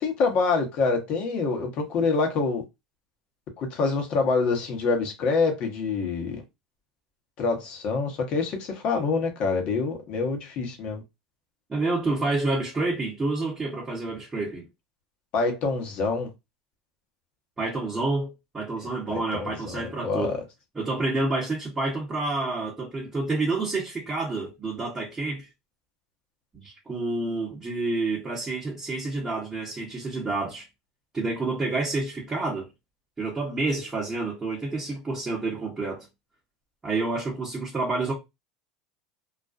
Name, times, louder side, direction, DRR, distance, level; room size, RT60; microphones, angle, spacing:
voice 1, 0.0-2.6 3.6-6.4 7.4-11.0 15.3-16.3 19.1-20.4, left 4 dB, 50° left, 0.9 m, -26 dB
voice 2, 11.7-14.7 17.6-20.4 20.7-25.5 26.5-30.7 31.1-32.7 33.2-36.1 36.8-38.1, right 3 dB, 20° right, 0.9 m, -29 dB
2.4 x 2.2 x 2.4 m
supercardioid pair, 105°, 3 cm